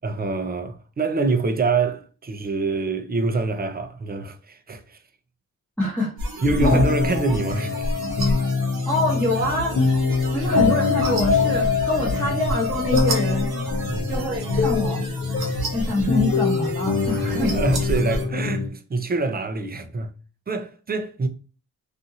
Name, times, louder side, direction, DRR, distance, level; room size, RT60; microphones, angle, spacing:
voice 1, 0.0-5.0 6.4-7.7 10.4-10.5 13.9-14.1 17.1-20.1 20.5-21.3, right 3 dB, 25° right, 0.5 m, -25 dB
voice 2, 5.8-6.1 6.6-6.8 8.8-9.8 10.3-13.5 14.1-15.0 15.7-17.6, left 1 dB, 5° left, 1.1 m, -25 dB
sound 1, 6.2-18.2, right 1 dB, 90° right, 1.0 m, -30 dB
sound 2, 6.4-18.7, left 4 dB, 45° left, 0.7 m, -24 dB
2.6 x 2.5 x 2.7 m
cardioid pair, 70°, 37 cm